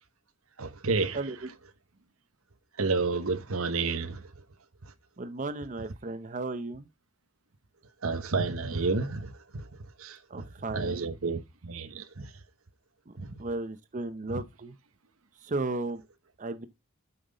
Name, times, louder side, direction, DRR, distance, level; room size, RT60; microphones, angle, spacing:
voice 1, 0.6-1.2 2.8-4.3 4.8-4.9 8.0-9.7 10.0-12.3 13.2-13.3, right 4 dB, 80° right, 1.0 m, -31 dB
voice 2, 1.1-1.5 5.2-6.9 10.3-11.1 13.1-13.2 13.4-14.7 15.4-16.0 16.4-16.7, right 2 dB, 40° right, 0.7 m, -35 dB
8.9 x 5.9 x 3.9 m
head